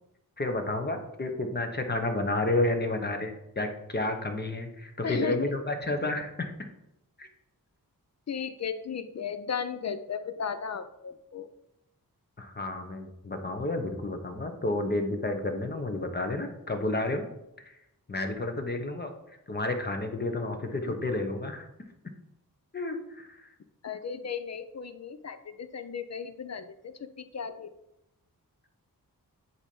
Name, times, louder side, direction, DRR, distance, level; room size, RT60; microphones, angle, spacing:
voice 1, 0.4-6.7 7.2-7.3 12.4-17.3 17.6-17.8 18.1-19.1 19.5-21.7 22.7-23.5, left 2 dB, 30° left, 5 dB, 1.1 m, -31 dB
voice 2, 5.0-5.5 8.3-11.5 23.8-27.7, left 7 dB, 45° left, 10 dB, 0.6 m, -35 dB
8.0 x 2.9 x 5.4 m, 0.86 s
cardioid pair, 60°, 36 cm